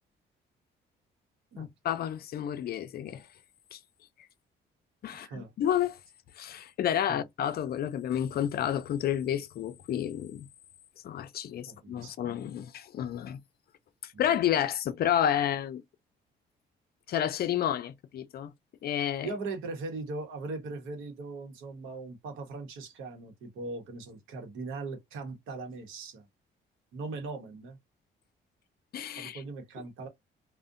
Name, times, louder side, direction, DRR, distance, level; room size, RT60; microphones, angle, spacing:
voice 1, 1.6-3.3 3.7-3.8 5.0-6.0 6.4-10.5 11.0-13.4 14.0-15.8 17.1-18.5 18.8-19.3 28.9-29.4, left 10 dB, 50° left, 0.4 m, -30 dB
voice 2, 5.1-5.5 7.1-7.2 11.7-12.1 14.1-14.2 19.2-26.2 26.9-27.8 29.2-30.1, right 3 dB, 90° right, 0.8 m, -39 dB
2.6 x 2.1 x 2.4 m
cardioid pair, 90°, 20 cm